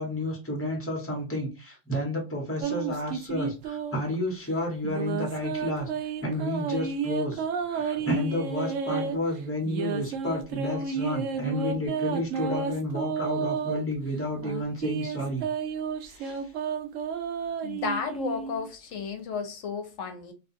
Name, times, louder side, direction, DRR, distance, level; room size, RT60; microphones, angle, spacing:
voice 1, 0.0-15.4 16.1-16.5, left 1 dB, 10° left, 1.0 m, -31 dB
sound 1, 2.6-4.2 4.8-9.2 9.7-13.8 14.4-18.7, right 6 dB, 85° right, 0.9 m, -31 dB
voice 2, 17.6-20.3, left 5 dB, 80° left, 1.0 m, -33 dB
2.8 x 2.3 x 2.6 m
omnidirectional pair, 1.3 m